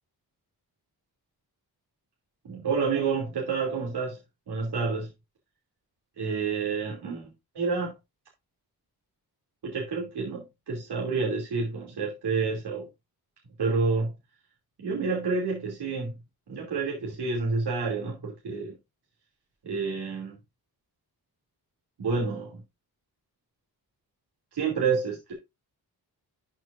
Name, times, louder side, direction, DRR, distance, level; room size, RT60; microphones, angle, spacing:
voice 1, 2.4-4.2 4.5-5.1 6.2-7.9 9.6-12.9 13.6-14.1 14.8-16.2 16.5-18.7 19.6-20.4 22.0-22.6 24.5-25.3, right 4 dB, 85° right, 2.9 m, -29 dB
12.5 x 6.1 x 2.6 m
wide cardioid pair, 155°, 39 cm